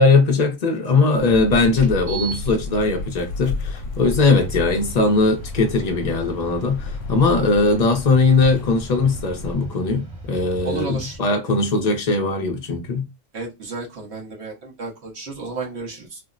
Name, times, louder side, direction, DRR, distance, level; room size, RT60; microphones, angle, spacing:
voice 1, 0.0-13.1, left 3 dB, 40° left, 0.6 m, -19 dB
sound 1, 0.8-0.9 1.8-11.2, right 4 dB, 45° right, 1.4 m, -40 dB
sound 2, 1.1-9.5, left 3 dB, 80° left, 0.9 m, -32 dB
voice 2, 10.6-11.2 13.3-16.2, right 4 dB, 60° right, 1.3 m, -32 dB
3.4 x 2.0 x 2.4 m
omnidirectional pair, 1.3 m